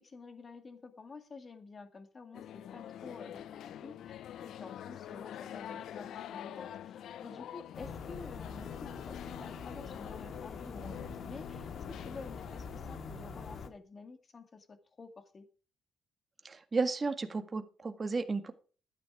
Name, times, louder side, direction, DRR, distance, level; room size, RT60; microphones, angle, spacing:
voice 1, 0.0-15.5, left 4 dB, 35° left, 8 dB, 2.2 m, -50 dB
sound 1, 2.3-13.0, left 11 dB, 75° left, 0.5 m, -46 dB
sound 2, 7.7-13.7, left 4 dB, 60° left, 1.7 m, -44 dB
voice 2, 16.4-18.5, right 4 dB, 30° right, 8 dB, 1.7 m, -33 dB
12.5 x 9.7 x 5.0 m, 0.39 s
cardioid pair, 90°, 0 cm